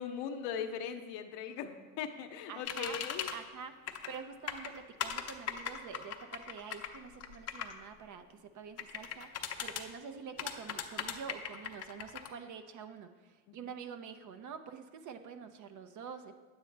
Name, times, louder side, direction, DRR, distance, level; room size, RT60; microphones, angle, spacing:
voice 1, 0.0-3.3 13.5-13.7, left 7 dB, 60° left, 7 dB, 0.9 m, -40 dB
voice 2, 2.5-3.0 3.3-3.7 4.1-16.3, right 6 dB, 40° right, 8 dB, 0.7 m, -47 dB
sound 1, 2.7-3.3 3.9-4.2 4.5-7.7 8.8-9.8 10.4-12.3, left 8 dB, 35° left, 0.8 m, -38 dB
9.1 x 8.1 x 3.3 m, 1.4 s
hypercardioid pair, 90°, 45 cm